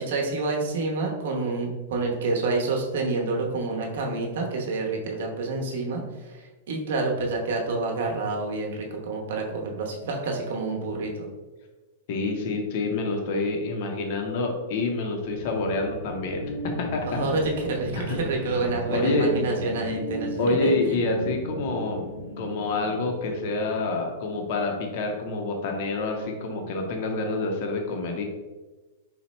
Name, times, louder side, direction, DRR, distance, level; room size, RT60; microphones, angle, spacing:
voice 1, 0.0-11.3 17.0-21.0, right 3 dB, 60° right, 0 dB, 0.8 m, -28 dB
voice 2, 12.1-17.3 17.9-18.2 18.9-19.3 20.4-22.0 22.4-28.2, left 3 dB, 40° left, 3 dB, 0.6 m, -27 dB
sound 1, 15.1-24.2, left 1 dB, 90° left, 1.2 m, -36 dB
4.2 x 2.1 x 4.1 m, 1.2 s
supercardioid pair, 175°, 0 cm